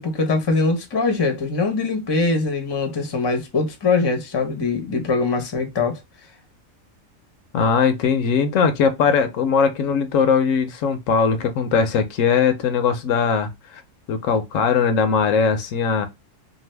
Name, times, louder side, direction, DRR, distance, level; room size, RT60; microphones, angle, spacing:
voice 1, 0.0-6.0, left 3 dB, 25° left, 0.6 m, -22 dB
voice 2, 7.5-13.8 14.1-16.1, left 6 dB, 75° left, 0.9 m, -20 dB
2.6 x 2.5 x 3.2 m
omnidirectional pair, 1.4 m